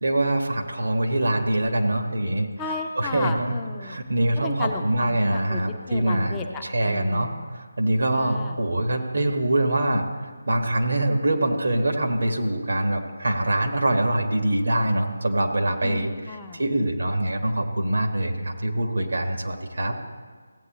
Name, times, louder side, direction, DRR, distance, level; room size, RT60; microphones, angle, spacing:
voice 1, 0.0-2.5 3.0-3.5 3.8-10.0 10.5-19.9, right 1 dB, 65° right, 3 dB, 1.4 m, -24 dB
voice 2, 2.6-4.0 4.4-5.6 5.9-7.5 8.1-8.6 15.8-16.6, left 4 dB, 15° left, 2 dB, 0.5 m, -34 dB
16.0 x 8.5 x 3.0 m, 1.5 s
figure-of-eight pair, 155°, 0 cm